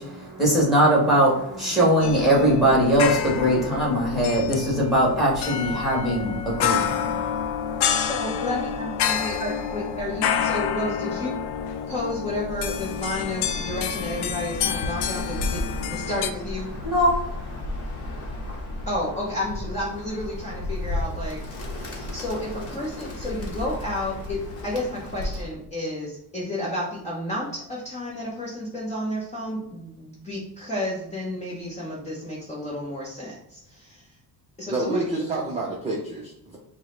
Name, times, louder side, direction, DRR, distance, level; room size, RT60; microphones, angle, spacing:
voice 1, 0.0-7.2 16.8-17.6, equal, ahead, -5 dB, 1.5 m, -21 dB
sound 1, 2.0-16.3, left 8 dB, 85° left, 0.5 m, -28 dB
voice 2, 8.0-11.4 11.9-16.7 18.9-21.4 21.7-34.1 34.6-35.2, left 1 dB, 15° left, -5 dB, 0.8 m, -31 dB
Bird, 12.5-25.6, left 2 dB, 40° left, 1.0 m, -34 dB
voice 3, 34.7-36.6, right 2 dB, 15° right, -3 dB, 0.6 m, -28 dB
4.7 x 2.2 x 3.8 m, 0.79 s
cardioid pair, 155°, 39 cm